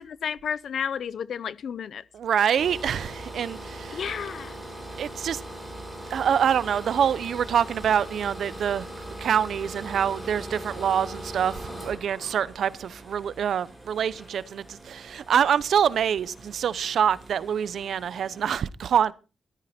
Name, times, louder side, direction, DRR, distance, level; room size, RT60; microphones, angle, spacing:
voice 1, 0.0-2.0 3.9-4.5, left 7 dB, 65° left, 0.7 m, -32 dB
voice 2, 2.1-4.0 5.0-5.4 6.1-8.9 9.2-19.1, right 8 dB, 75° right, 0.7 m, -25 dB
sound 1, 2.6-18.6, right 1 dB, ahead, 4.8 m, -41 dB
14.5 x 13.0 x 4.3 m
wide cardioid pair, 170°, 0 cm